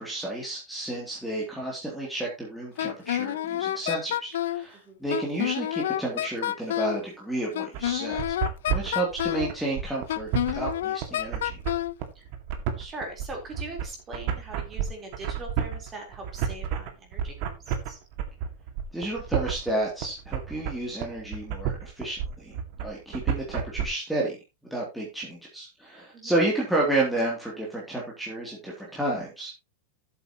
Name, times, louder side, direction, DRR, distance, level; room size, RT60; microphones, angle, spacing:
voice 1, 0.0-8.4 8.7-11.6 18.9-24.4 24.7-29.5, right 2 dB, ahead, -5 dB, 2.9 m, -31 dB
Wind instrument woodwind instrument, 2.8-4.6 5.1-7.0 7.5-9.5 10.1-11.9, left 12 dB, 85° left, 0.5 m, -29 dB
sound 1, 7.7-23.8, right 8 dB, 50° right, 2.0 m, -31 dB
voice 2, 12.8-18.0 26.1-26.3, right 2 dB, 20° right, 1 dB, 3.9 m, -41 dB
13.0 x 8.0 x 3.0 m, 0.25 s
supercardioid pair, 150°, 0 cm